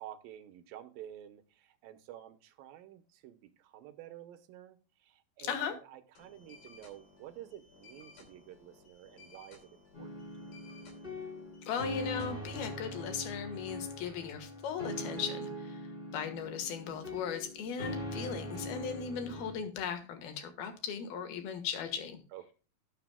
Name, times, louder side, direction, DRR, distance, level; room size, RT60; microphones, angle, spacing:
voice 1, 0.0-10.1 22.3-22.5, right 12 dB, 80° right, 11 dB, 2.4 m, -50 dB
voice 2, 5.4-5.8 11.6-15.8 16.1-22.2, left 7 dB, 80° left, 7 dB, 3.3 m, -38 dB
sound 1, 6.2-12.7, left 4 dB, 55° left, 4.0 m, -58 dB
sound 2, 9.9-19.5, left 1 dB, 15° left, 3.6 m, -41 dB
17.5 x 6.9 x 2.2 m, 0.35 s
omnidirectional pair, 4.3 m